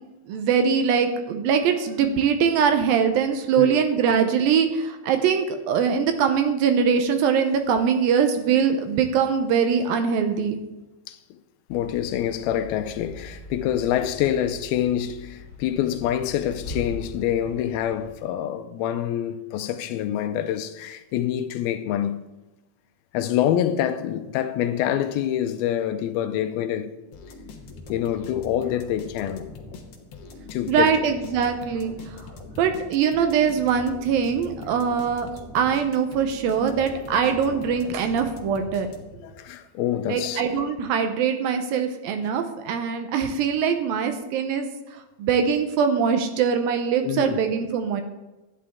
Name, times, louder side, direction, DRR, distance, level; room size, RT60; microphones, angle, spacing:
voice 1, 0.3-10.6 30.7-32.2 32.6-35.3 35.5-38.9 40.1-48.0, right 7 dB, 75° right, 2.4 m, -22 dB
voice 2, 11.7-22.2 23.1-26.9 27.9-29.5 30.5-31.0 39.2-40.4 47.0-47.4, left 11 dB, 80° left, 2.5 m, -26 dB
sound 1, 11.7-18.2, left 2 dB, 50° left, 1.7 m, -41 dB
sound 2, 27.1-39.3, left 3 dB, 65° left, 1.5 m, -42 dB
13.0 x 9.9 x 3.6 m
omnidirectional pair, 4.5 m